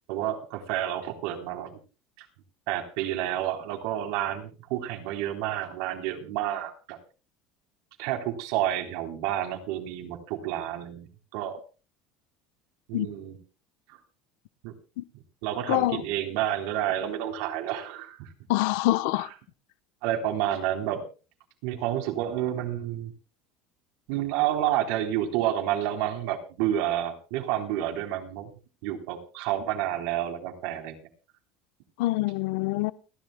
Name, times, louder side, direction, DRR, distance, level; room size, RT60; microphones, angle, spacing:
voice 1, 0.1-1.8 2.2-2.3 2.7-7.0 8.0-11.6 12.9-13.4 13.9-14.0 14.6-14.7 15.4-18.3 20.0-21.0 21.6-23.1 24.1-28.5 28.8-31.0, right 12 dB, 75° right, 3.7 m, -30 dB
voice 2, 15.7-16.0 18.5-19.3 32.0-32.9, left 17 dB, 80° left, 1.0 m, -25 dB
30.0 x 11.0 x 2.3 m
cardioid pair, 140°, 0 cm